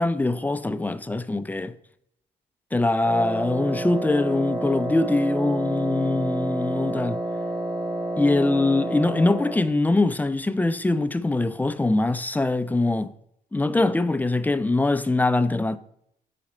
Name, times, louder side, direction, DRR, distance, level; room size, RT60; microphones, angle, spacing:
voice 1, 0.0-1.7 2.7-7.2 8.2-13.1 13.5-15.8, left 2 dB, 10° left, 0.3 m, -23 dB
Wind instrument woodwind instrument, 3.0-9.7, right 2 dB, 25° right, 1.3 m, -29 dB
6.0 x 4.2 x 4.2 m
cardioid pair, 90°, 20 cm